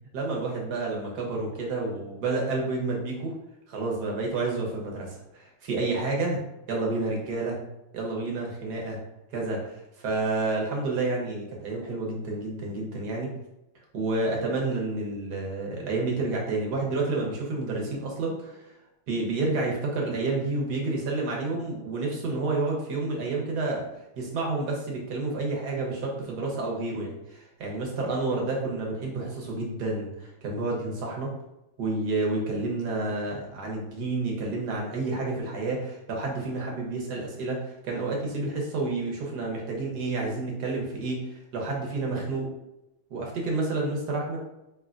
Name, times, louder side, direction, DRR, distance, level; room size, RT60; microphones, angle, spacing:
voice 1, 0.1-3.3 3.7-6.4 6.7-7.6 7.9-9.0 9.3-13.3 13.9-18.7 19.1-23.9 24.2-31.3 31.8-42.5 43.1-44.4, right 3 dB, 60° right, -1 dB, 1.4 m, -29 dB
4.6 x 3.4 x 2.5 m, 0.90 s
omnidirectional pair, 2.2 m